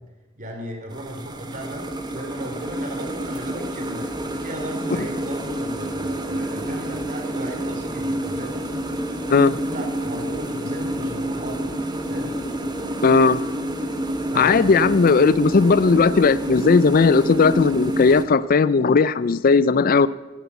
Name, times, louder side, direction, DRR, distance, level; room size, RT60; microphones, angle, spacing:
voice 1, 0.4-4.1 4.4-8.6 9.4-11.6 12.1-12.3 14.3-14.7, right 1 dB, 40° right, 3 dB, 2.9 m, -36 dB
sound 1, 0.9-18.2, right 1 dB, 20° right, 1.2 m, -28 dB
voice 2, 13.0-13.4 14.4-20.1, left 4 dB, 45° left, 17 dB, 0.4 m, -17 dB
16.5 x 8.1 x 8.2 m, 1.2 s
head